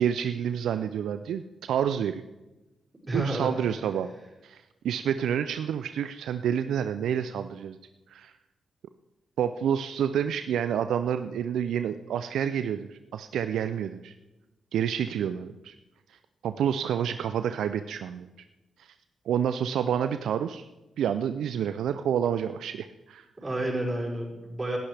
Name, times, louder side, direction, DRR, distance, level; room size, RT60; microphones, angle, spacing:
voice 1, 0.0-2.2 3.1-4.1 4.4-7.8 8.1-8.3 9.4-14.1 14.7-15.7 16.4-18.3 18.8-18.9 19.3-20.6 21.0-23.2, right 9 dB, 75° right, 10 dB, 0.4 m, -28 dB
voice 2, 3.0-3.5 23.4-24.8, right 1 dB, 30° right, -3 dB, 5.4 m, -30 dB
17.5 x 11.5 x 3.4 m, 1.1 s
hypercardioid pair, 40°, 0 cm